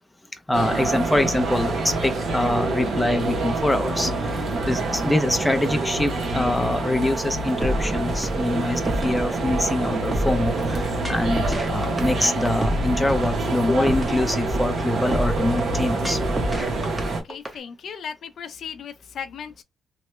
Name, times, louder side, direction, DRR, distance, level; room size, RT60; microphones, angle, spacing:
voice 1, 0.3-16.2, left 1 dB, 5° left, 0.5 m, -24 dB
sound 1, 0.5-17.2, right 2 dB, 65° right, 1.0 m, -26 dB
sound 2, 7.6-17.5, equal, 15° right, 0.8 m, -28 dB
voice 2, 17.0-19.6, left 7 dB, 65° left, 0.5 m, -37 dB
3.0 x 2.2 x 3.0 m
cardioid pair, 120°, 0 cm